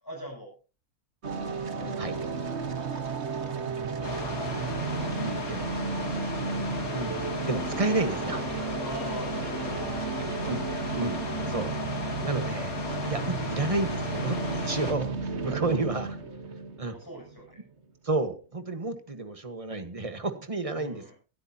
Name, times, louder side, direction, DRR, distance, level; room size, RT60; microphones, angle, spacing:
voice 1, 0.0-0.5 1.7-2.3 2.7-4.0 8.8-10.1 16.9-17.6 20.8-21.1, equal, 15° left, -6 dB, 7.8 m, -45 dB
sound 1, 1.2-17.6, right 4 dB, 45° right, 1.6 m, -33 dB
sound 2, 4.0-14.9, left 3 dB, 70° left, 3.1 m, -36 dB
voice 2, 5.2-5.6 6.9-8.7 10.4-10.6 10.9-11.2 11.5-11.7 12.2-16.2 16.8-17.0 18.0-21.1, right 3 dB, 25° right, 8 dB, 1.4 m, -31 dB
24.5 x 13.0 x 2.9 m, 0.35 s
omnidirectional pair, 1.6 m